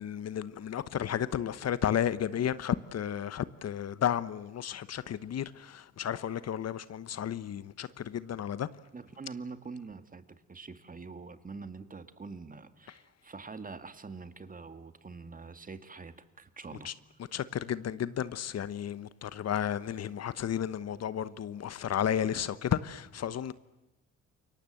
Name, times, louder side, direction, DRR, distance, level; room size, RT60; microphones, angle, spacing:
voice 1, 0.0-8.7 12.9-13.0 16.8-16.9 17.3-23.5, left 9 dB, 55° left, 1.1 m, -33 dB
voice 2, 8.9-16.9, right 4 dB, 25° right, 2.0 m, -45 dB
28.5 x 23.0 x 7.8 m
cardioid pair, 90°, 30 cm